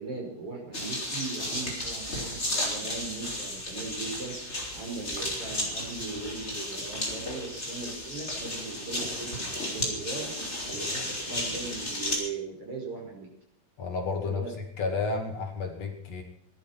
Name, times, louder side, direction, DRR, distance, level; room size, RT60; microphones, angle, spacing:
voice 1, 0.0-4.3 4.7-10.3 10.7-13.3 14.2-14.5, right 3 dB, 45° right, 0 dB, 6.6 m, -39 dB
sound 1, 0.7-12.2, left 1 dB, 20° left, 5.7 m, -33 dB
voice 2, 13.8-14.4 14.8-16.2, left 4 dB, 55° left, 3 dB, 3.4 m, -31 dB
19.0 x 12.0 x 6.0 m, 0.75 s
omnidirectional pair, 3.6 m